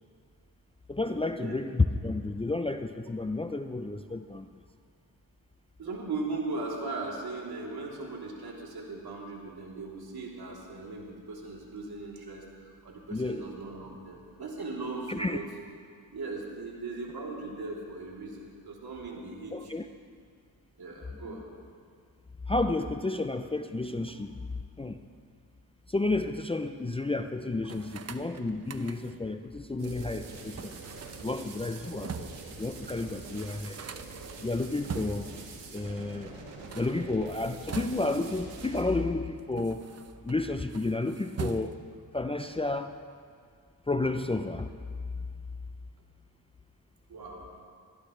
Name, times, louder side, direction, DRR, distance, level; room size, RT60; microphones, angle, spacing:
voice 1, 0.9-4.5 13.1-13.4 15.1-15.4 19.5-19.8 21.2-21.4 22.5-24.4 24.8-25.0 25.9-30.8 31.2-32.3 32.6-33.8 34.4-35.3 35.7-36.3 36.7-39.9 40.2-41.8 42.1-43.0 43.9-44.7, left 2 dB, 15° left, 7 dB, 0.6 m, -31 dB
voice 2, 5.8-15.4 16.1-19.8 20.8-21.5 47.1-47.5, right 3 dB, 60° right, -3 dB, 3.4 m, -38 dB
sound 1, 27.7-29.3 30.6-32.5 32.9-33.0 33.2-35.4 36.5-38.3 39.1-40.4 40.7-42.0, right 5 dB, 35° right, 0.9 m, -42 dB
sound 2, 29.8-38.8, right 4 dB, 85° right, 2.0 m, -45 dB
22.0 x 14.5 x 3.3 m, 2.1 s
cardioid pair, 60°, 41 cm